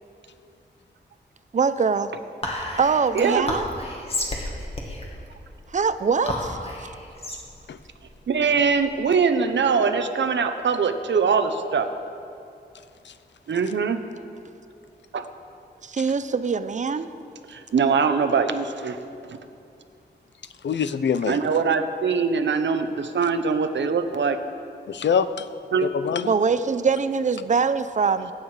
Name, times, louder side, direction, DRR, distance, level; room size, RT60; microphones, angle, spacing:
voice 1, 1.5-2.1 2.8-3.7 5.7-6.9 15.8-17.1 26.2-28.3, right 5 dB, 40° right, 11 dB, 0.6 m, -23 dB
Whispering, 2.4-9.1, left 1 dB, 35° left, 1.8 m, -32 dB
voice 2, 8.3-11.9 13.5-14.0 15.1-15.3 17.5-19.0 19.3-19.4 21.3-24.4 25.7-25.9, right 5 dB, 85° right, 8 dB, 0.9 m, -22 dB
voice 3, 20.6-21.4 24.9-25.5 25.8-26.3, left 7 dB, 80° left, 12 dB, 0.6 m, -24 dB
22.5 x 9.1 x 4.9 m, 2.5 s
wide cardioid pair, 165°, 18 cm